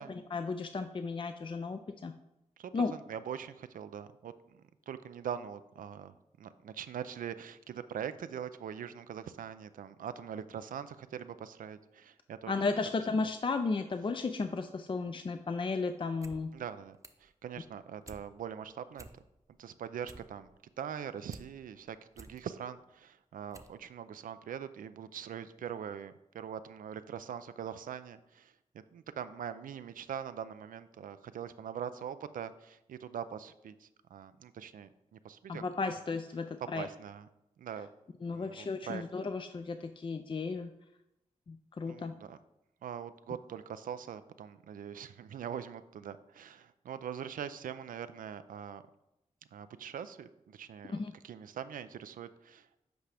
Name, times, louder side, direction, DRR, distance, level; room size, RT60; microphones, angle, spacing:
voice 1, 0.0-2.1 2.7-2.9 12.5-16.5 35.5-36.9 38.2-40.7 41.5-42.1 50.9-51.1, left 4 dB, 40° left, 8 dB, 0.4 m, -34 dB
voice 2, 2.6-12.6 13.2-13.3 16.5-19.1 19.6-20.5 20.8-35.6 36.7-37.3 37.6-37.9 38.3-39.0 41.9-42.4 42.8-48.8 49.5-52.8, right 8 dB, 80° right, 12 dB, 0.4 m, -43 dB
sound 1, 16.2-16.4 16.7-17.3 17.7-18.2 18.6-18.7 18.9-19.5 19.8-21.5 21.9-22.4 23.0-23.1 23.5-23.8 24.1-24.2, right 2 dB, 25° right, 0.7 m, -52 dB
8.0 x 4.8 x 3.4 m, 0.87 s
cardioid pair, 40°, 14 cm